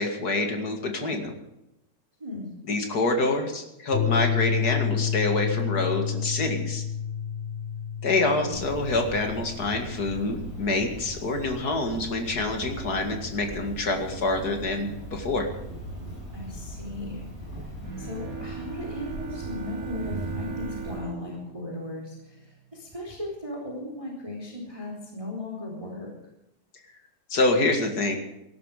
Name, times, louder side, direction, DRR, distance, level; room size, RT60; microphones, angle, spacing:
voice 1, 0.0-1.4 2.7-6.8 8.0-15.5 27.3-28.2, left 2 dB, 35° left, 4 dB, 2.2 m, -26 dB
voice 2, 2.2-2.5 8.1-8.6 16.3-17.2 17.5-26.1, left 2 dB, 10° right, -1 dB, 3.6 m, -37 dB
sound 1, 3.9-11.0, left 8 dB, 80° left, 2.3 m, -30 dB
Cricket, 8.5-21.0, right 1 dB, 20° left, 8.3 m, -38 dB
Bowed string instrument, 17.8-23.0, right 5 dB, 35° right, 2.1 m, -39 dB
18.0 x 12.5 x 5.0 m, 0.87 s
omnidirectional pair, 3.4 m